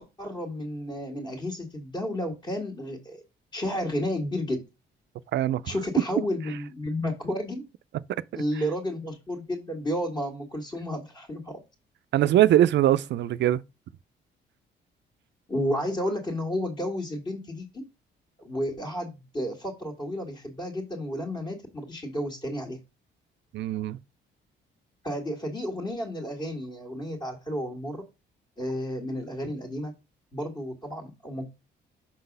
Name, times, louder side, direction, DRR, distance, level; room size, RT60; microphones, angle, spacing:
voice 1, 0.2-3.2 3.5-4.6 5.7-7.6 8.3-11.6 15.5-17.8 18.4-22.8 25.0-28.0 28.6-29.9 30.3-31.5, equal, 25° left, 1.8 m, -32 dB
voice 2, 5.3-5.6 12.1-13.6 23.5-24.0, right 12 dB, 65° right, 0.4 m, -21 dB
6.2 x 3.9 x 5.3 m
cardioid pair, 90°, 20 cm